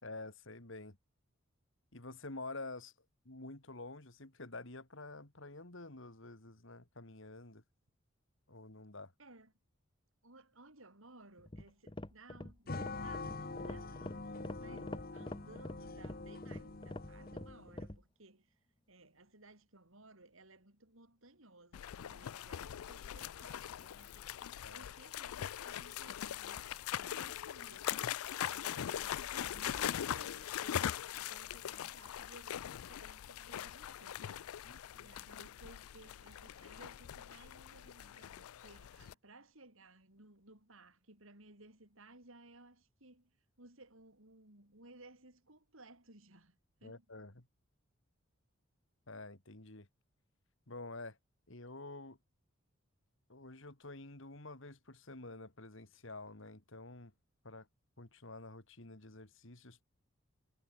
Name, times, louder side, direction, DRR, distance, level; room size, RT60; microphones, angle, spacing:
voice 1, 0.0-1.0 1.9-2.9 3.2-7.6 8.5-9.1 14.6-14.8 24.6-24.9 34.6-35.1 46.8-47.5 49.1-49.9 50.7-51.2 51.5-52.2 53.3-57.1 57.4-57.7 58.0-59.8, left 2 dB, 60° left, 2.7 m, -49 dB
voice 2, 9.2-9.5 10.2-18.6 18.9-24.3 24.7-28.1 28.5-34.5 35.0-43.3 43.6-47.1, right 2 dB, 70° right, 5.9 m, -59 dB
sound 1, 11.4-18.0, left 1 dB, 25° left, 1.0 m, -46 dB
sound 2, 12.7-17.8, left 3 dB, 45° left, 1.3 m, -45 dB
sound 3, 21.7-39.1, left 10 dB, 85° left, 0.4 m, -41 dB
head